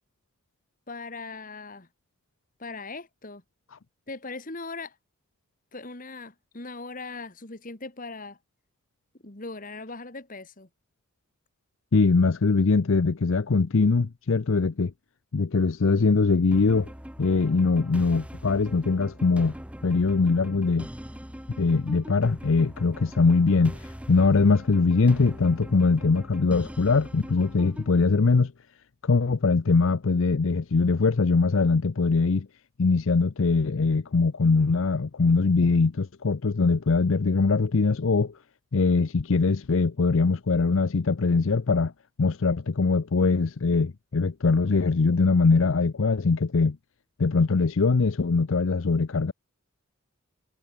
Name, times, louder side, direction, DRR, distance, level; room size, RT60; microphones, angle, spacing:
voice 1, 0.9-1.9 2.6-3.4 4.1-5.0 5.7-8.4 9.2-10.7, left 3 dB, 35° left, 1.9 m, -39 dB
voice 2, 11.9-14.9 15.3-16.9 17.2-19.5 19.8-20.9 21.6-28.5 29.0-32.5 32.8-38.3 38.7-41.9 42.2-46.8 47.2-49.3, left 4 dB, 60° left, 0.6 m, -22 dB
sound 1, 16.5-27.9, equal, 5° right, 1.2 m, -42 dB
head